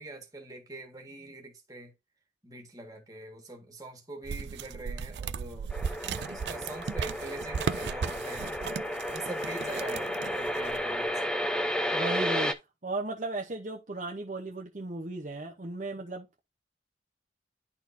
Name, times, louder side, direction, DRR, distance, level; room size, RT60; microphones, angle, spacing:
voice 1, 0.0-1.9 2.4-5.7 6.2-8.6 9.1-11.3, right 2 dB, 20° right, 1.7 m, -43 dB
sound 1, 4.2-11.0, right 6 dB, 80° right, 0.4 m, -36 dB
sound 2, 5.7-12.5, equal, 5° left, 0.6 m, -32 dB
voice 2, 11.9-16.4, right 2 dB, 45° right, 0.8 m, -36 dB
11.0 x 4.1 x 2.7 m
head